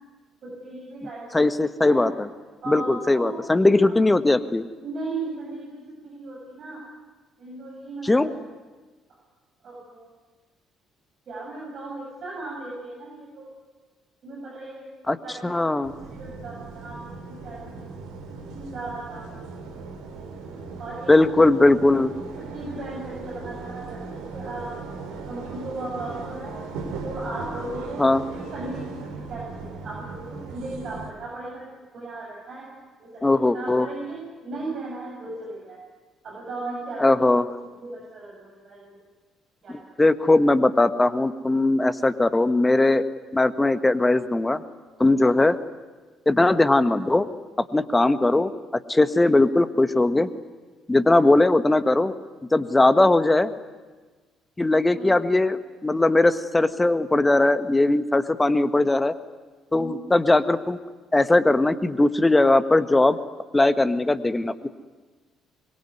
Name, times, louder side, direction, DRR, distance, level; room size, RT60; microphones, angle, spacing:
voice 1, 0.4-1.5 1.8-2.0 2.6-3.3 3.8-4.0 4.7-6.8 7.4-8.3 9.6-10.1 11.3-13.5 14.2-14.9 15.2-15.5 16.0-19.4 20.8-21.3 22.4-24.8 25.3-26.6 27.0-28.1 28.4-35.8 36.2-37.2 37.8-38.8 39.6-39.8 54.9-55.1 59.7-60.0, right 2 dB, 45° right, -3 dB, 8.0 m, -37 dB
voice 2, 1.0-2.3 2.7-4.6 8.0-8.3 15.1-15.2 15.4-15.9 21.1-22.1 28.0-28.2 33.2-33.9 37.0-37.5 39.7-43.1 43.3-44.6 45.0-45.5 46.2-47.3 47.6-48.5 48.9-50.3 50.9-52.1 52.5-53.5 54.6-59.1 59.7-60.8 61.1-63.2 63.5-64.7, left 2 dB, 15° left, 11 dB, 1.6 m, -19 dB
sound 1, 15.8-31.1, right 4 dB, 65° right, 3.8 m, -38 dB
24.5 x 22.5 x 9.7 m, 1.3 s
figure-of-eight pair, 50°, 0 cm